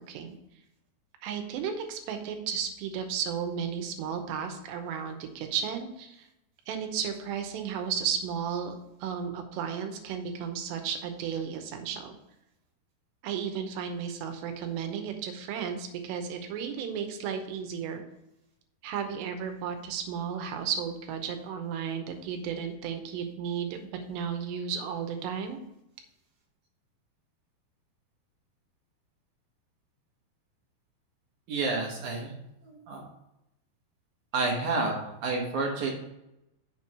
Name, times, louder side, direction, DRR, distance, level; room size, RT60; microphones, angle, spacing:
voice 1, 1.2-6.3 6.7-8.7 9.0-12.2 13.2-18.0 18.8-25.6, right 7 dB, 90° right, 6 dB, 3.0 m, -34 dB
voice 2, 31.5-32.3 32.6-33.0 34.3-35.0 35.2-35.9, right 3 dB, 70° right, -1 dB, 1.9 m, -29 dB
6.7 x 4.5 x 5.9 m, 0.88 s
omnidirectional pair, 4.9 m